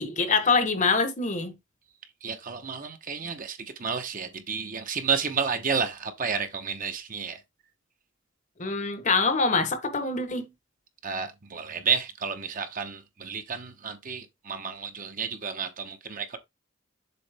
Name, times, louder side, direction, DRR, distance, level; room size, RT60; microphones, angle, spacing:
voice 1, 0.0-1.5 8.6-10.5, left 4 dB, 40° left, 1.0 m, -25 dB
voice 2, 2.2-7.4 11.0-16.4, right 6 dB, 45° right, 0.9 m, -31 dB
7.0 x 3.9 x 3.4 m
head